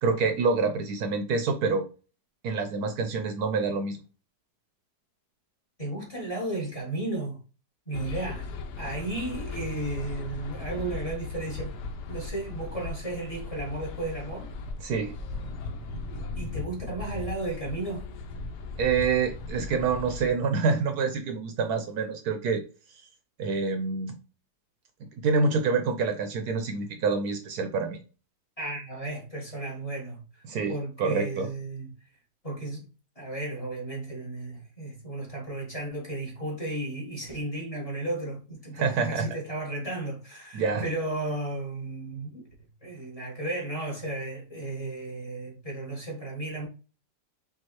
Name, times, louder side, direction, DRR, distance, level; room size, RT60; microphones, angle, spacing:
voice 1, 0.0-1.9 2.4-4.0 14.8-15.1 18.8-22.6 23.4-24.2 25.0-28.0 30.4-31.5 38.8-39.3 40.5-40.9, right 4 dB, 70° right, 1.1 m, -27 dB
voice 2, 5.8-7.4 7.9-8.5 8.8-11.8 12.1-14.5 16.3-18.1 28.6-31.9 32.4-32.9 33.1-42.4 42.8-46.7, right 2 dB, 20° left, 1.5 m, -34 dB
sound 1, 7.9-20.3, left 3 dB, 85° left, 1.3 m, -37 dB
5.6 x 2.7 x 3.0 m
omnidirectional pair, 1.8 m